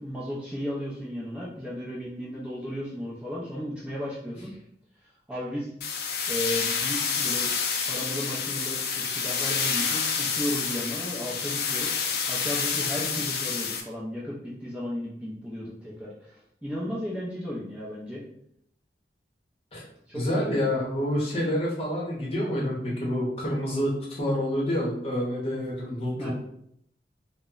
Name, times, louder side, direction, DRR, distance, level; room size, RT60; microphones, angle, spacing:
voice 1, 0.0-4.5 5.3-5.7 6.3-7.5 7.8-11.9 12.3-16.4 16.6-18.2 20.1-20.6 26.2-26.3, equal, 5° right, -7 dB, 0.5 m, -34 dB
sound 1, 5.8-13.8, left 6 dB, 65° left, 0.4 m, -28 dB
voice 2, 20.1-26.3, equal, 35° left, -4 dB, 0.8 m, -28 dB
2.1 x 2.0 x 3.6 m, 0.71 s
head